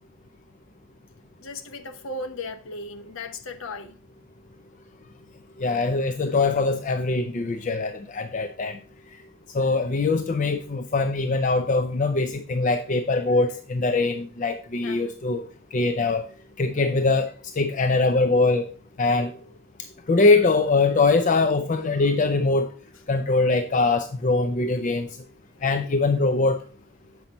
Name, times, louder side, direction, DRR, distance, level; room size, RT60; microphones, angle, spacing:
voice 1, 1.4-4.0 14.8-15.1 19.8-19.9 23.5-23.9 24.3-25.0, left 2 dB, 65° left, 1.0 m, -38 dB
voice 2, 5.6-8.8 9.5-15.4 15.7-16.2 16.6-18.7 19.0-19.3 20.1-22.7 23.1-25.1 25.6-26.6, left 3 dB, 35° left, 0.5 m, -22 dB
7.8 x 5.9 x 4.0 m
head